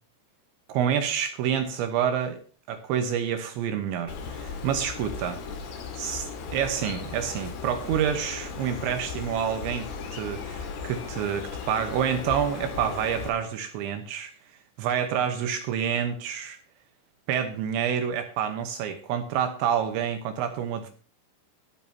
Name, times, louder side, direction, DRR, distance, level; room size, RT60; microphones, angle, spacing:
voice 1, 0.7-2.4 2.7-5.4 6.0-14.3 14.8-16.6 17.3-20.9, right 8 dB, 75° right, 7 dB, 3.1 m, -28 dB
Bird, 4.1-13.3, left 5 dB, 90° left, 4.7 m, -36 dB
21.0 x 9.1 x 2.8 m, 0.39 s
omnidirectional pair, 5.6 m